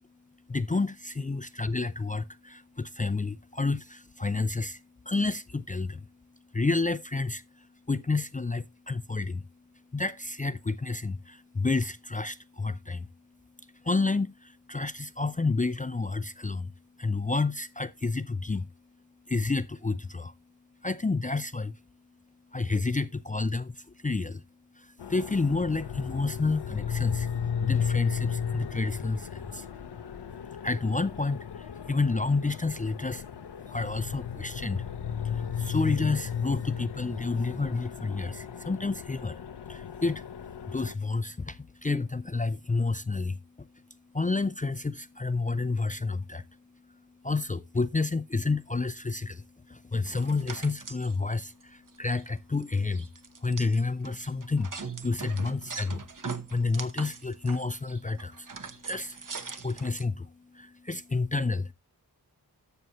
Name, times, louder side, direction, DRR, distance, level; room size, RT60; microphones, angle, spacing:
voice 1, 0.5-6.1 6.5-9.5 9.9-13.1 13.8-16.7 17.0-18.7 19.3-20.3 20.8-21.8 22.5-24.4 24.8-27.3 27.6-29.7 30.6-33.2 33.7-34.9 35.2-39.4 39.7-40.3 40.7-43.7 44.1-46.5 47.2-53.1 53.4-61.7, left 3 dB, 20° left, 0.4 m, -30 dB
sound 1, 25.0-40.9, left 7 dB, 80° left, 0.7 m, -35 dB
sound 2, 50.0-51.1 51.6-51.7 51.9-52.2 52.6-60.0, right 5 dB, 50° right, 1.1 m, -41 dB
12.5 x 6.8 x 3.0 m
wide cardioid pair, 60°, 40 cm